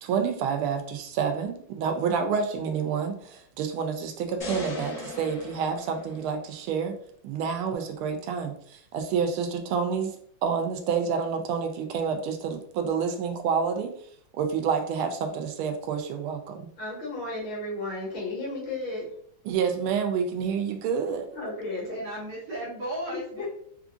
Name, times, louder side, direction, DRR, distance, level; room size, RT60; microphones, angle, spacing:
voice 1, 0.0-7.0 7.2-10.1 10.4-14.0 14.4-16.7 19.4-21.3, right 6 dB, 85° right, 5 dB, 1.4 m, -28 dB
sound 1, 4.4-6.7, left 2 dB, 30° left, 1.4 m, -38 dB
voice 2, 16.8-19.1 21.4-22.0 23.4-23.5, left 2 dB, 75° left, -4 dB, 2.0 m, -33 dB
voice 3, 21.9-23.5, right 1 dB, 65° right, -6 dB, 1.5 m, -35 dB
4.7 x 2.4 x 2.4 m, 0.63 s
omnidirectional pair, 2.3 m